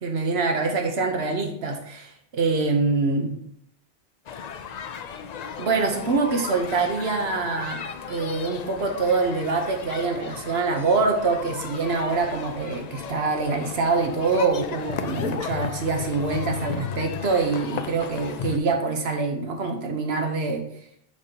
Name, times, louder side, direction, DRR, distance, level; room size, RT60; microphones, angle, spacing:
voice 1, 0.0-3.4 5.6-20.6, right 4 dB, 80° right, 3 dB, 1.2 m, -25 dB
sound 1, 4.3-18.6, left 7 dB, 55° left, 0.5 m, -35 dB
6.6 x 5.2 x 2.8 m, 0.70 s
omnidirectional pair, 1.1 m